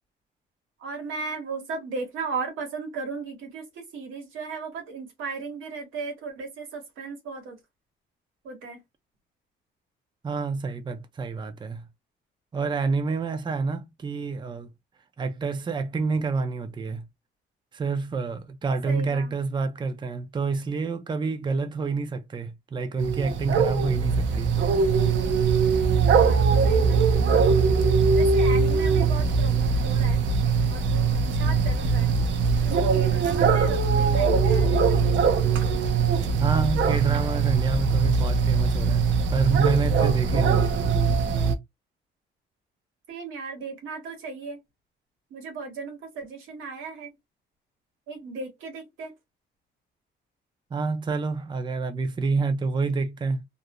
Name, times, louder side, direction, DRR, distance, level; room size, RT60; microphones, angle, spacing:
voice 1, 0.8-7.6 8.4-8.8 18.9-19.3 26.2-27.5 28.1-30.2 30.7-32.1 32.6-35.1 43.1-44.6 45.3-47.1 48.1-49.1, right 4 dB, 85° right, 1.2 m, -36 dB
voice 2, 10.2-11.9 12.5-14.7 15.2-17.1 17.7-24.6 36.4-39.0 39.3-40.8 50.7-53.4, right 4 dB, 25° right, 0.5 m, -28 dB
sound 1, 23.0-41.5, right 5 dB, 70° right, 0.6 m, -21 dB
2.5 x 2.0 x 2.9 m
cardioid pair, 90°, 20 cm